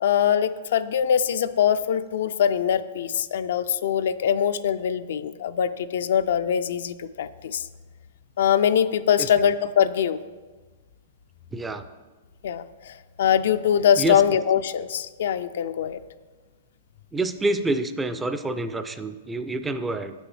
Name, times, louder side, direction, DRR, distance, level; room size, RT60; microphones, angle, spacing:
voice 1, 0.0-7.7 8.4-10.2 12.4-16.0, left 8 dB, 70° left, 12 dB, 0.3 m, -23 dB
voice 2, 11.5-11.8 14.0-14.2 17.1-20.1, right 2 dB, 10° right, 10 dB, 0.4 m, -27 dB
7.4 x 6.1 x 3.3 m, 1.3 s
hypercardioid pair, 135°, 0 cm